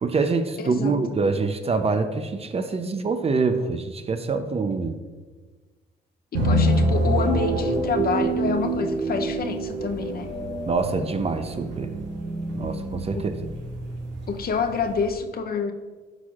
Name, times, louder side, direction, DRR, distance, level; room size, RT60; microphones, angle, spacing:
voice 1, 0.0-4.9 10.7-11.9 12.5-13.2, right 4 dB, 30° right, 8 dB, 0.6 m, -25 dB
voice 2, 0.6-1.0 6.3-10.3 13.1-13.3 14.3-15.7, left 5 dB, 50° left, 6 dB, 0.7 m, -27 dB
sound 1, 6.3-15.1, right 1 dB, 65° right, 1.6 m, -26 dB
11.5 x 4.6 x 2.4 m, 1.4 s
cardioid pair, 90°, 20 cm